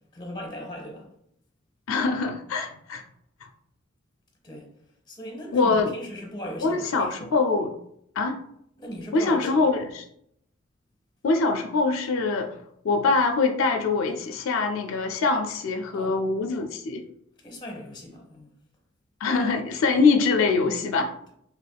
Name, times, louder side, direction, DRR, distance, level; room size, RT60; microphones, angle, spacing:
voice 1, 0.1-1.1 4.4-4.7 5.1-7.3 8.8-9.6 15.9-16.4 17.4-18.5, equal, 20° left, 0.7 m, -38 dB
voice 2, 1.9-3.0 5.5-5.9 6.6-7.7 8.2-8.4 9.1-10.1 11.2-12.6 12.8-17.0 19.2-21.1, left 4 dB, 75° left, 0.4 m, -23 dB
3.4 x 2.9 x 2.2 m
head